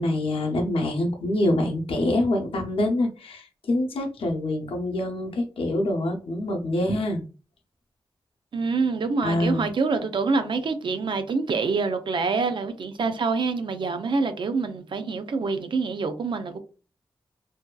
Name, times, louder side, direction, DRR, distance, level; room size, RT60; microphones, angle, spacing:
voice 1, 0.0-7.2 9.2-9.7, left 1 dB, 85° left, 0.6 m, -25 dB
voice 2, 8.5-16.6, right 4 dB, 60° right, 0.4 m, -26 dB
2.6 x 2.2 x 2.2 m
wide cardioid pair, 90°, 9 cm